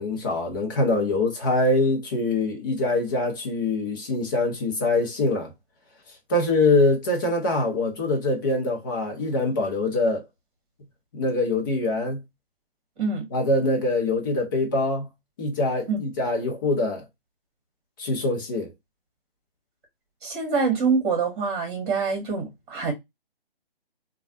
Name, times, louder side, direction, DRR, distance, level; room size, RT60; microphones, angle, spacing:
voice 1, 0.0-5.5 6.3-10.2 11.1-12.2 13.3-15.1 15.4-17.0 18.0-18.7, left 2 dB, 20° left, 0.7 m, -24 dB
voice 2, 13.0-13.3 15.9-16.0 20.2-22.9, right 4 dB, 30° right, 1.6 m, -25 dB
3.2 x 2.3 x 2.6 m
figure-of-eight pair, 145°, 30 cm